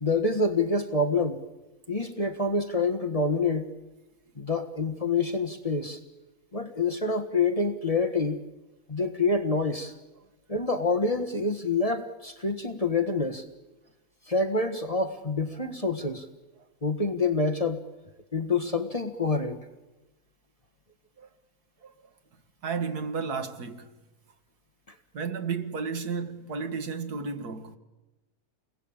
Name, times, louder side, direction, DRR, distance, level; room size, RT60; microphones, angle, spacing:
voice 1, 0.0-1.4 1.9-3.7 4.4-6.0 6.5-8.4 8.9-9.9 10.5-13.4 14.3-16.3 16.8-17.8 18.3-19.6, left 3 dB, 25° left, 1.4 m, -27 dB
voice 2, 22.6-23.9 25.1-27.8, right 5 dB, 75° right, 2.0 m, -32 dB
29.0 x 21.0 x 8.8 m
omnidirectional pair, 1.7 m